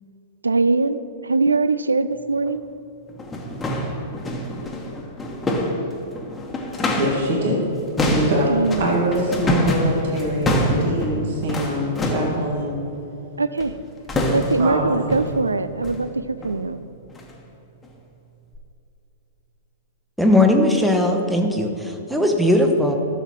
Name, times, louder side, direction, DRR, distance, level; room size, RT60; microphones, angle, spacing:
voice 1, 0.4-2.6 8.5-8.8 13.4-13.7 14.3-16.8, right 3 dB, 80° right, 13 dB, 0.3 m, -22 dB
sound 1, 2.5-2.6 3.1-7.3 7.6-12.4 13.6-13.8 14.1-14.7 15.1-15.4 15.8-16.1 16.4-16.6 17.1-17.3 17.8-17.9 18.5-18.6, left 1 dB, 15° left, 1.2 m, -25 dB
voice 2, 7.0-7.7 8.0-12.8 14.6-15.2, right 1 dB, 55° right, -2 dB, 1.8 m, -24 dB
voice 3, 20.2-23.0, left 1 dB, ahead, 3 dB, 0.9 m, -18 dB
13.0 x 7.0 x 3.0 m, 3.0 s
figure-of-eight pair, 105°, 0 cm